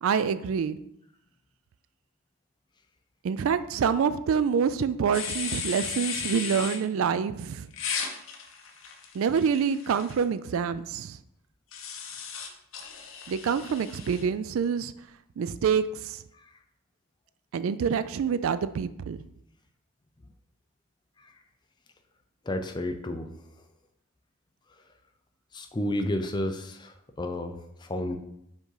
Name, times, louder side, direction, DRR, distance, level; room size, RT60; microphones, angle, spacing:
voice 1, 0.0-0.8 3.2-7.7 9.1-11.2 13.3-14.9 15.4-16.2 17.5-19.2, right 6 dB, 65° right, 14 dB, 0.3 m, -26 dB
sound 1, 5.1-6.8 7.7-10.2 11.7-14.2, left 6 dB, 60° left, 0.8 m, -36 dB
voice 2, 22.5-23.3 25.5-28.2, left 1 dB, 20° left, 6 dB, 0.4 m, -31 dB
5.3 x 3.7 x 4.7 m, 0.77 s
head